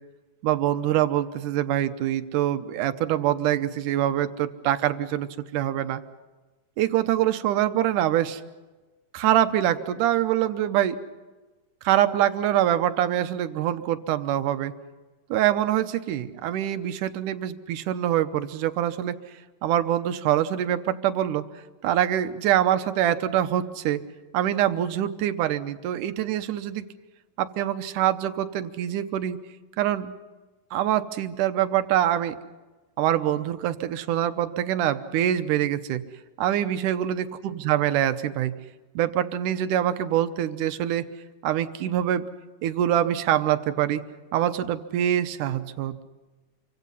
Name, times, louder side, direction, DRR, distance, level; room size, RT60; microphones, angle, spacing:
voice 1, 0.4-6.0 6.8-8.4 9.1-11.0 11.8-14.7 15.3-19.2 19.6-21.4 21.8-24.0 24.3-26.9 27.4-29.4 29.8-30.1 30.7-32.4 33.0-36.0 36.4-38.6 39.0-41.1 41.4-42.2 42.6-44.0 44.3-46.0, right 11 dB, 80° right, 10 dB, 2.4 m, -24 dB
27.0 x 24.5 x 5.6 m, 1.2 s
omnidirectional pair, 3.7 m